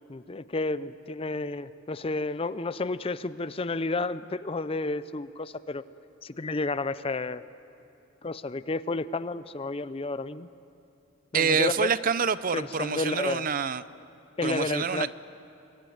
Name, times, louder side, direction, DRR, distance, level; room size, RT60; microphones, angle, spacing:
voice 1, 0.1-5.8 6.2-7.4 8.2-10.5 11.3-11.9 12.5-13.5 14.4-15.1, left 3 dB, 25° left, 15 dB, 0.5 m, -31 dB
voice 2, 11.3-13.8 14.4-15.1, right 6 dB, 40° right, 15 dB, 0.6 m, -27 dB
25.5 x 22.5 x 9.3 m, 2.9 s
head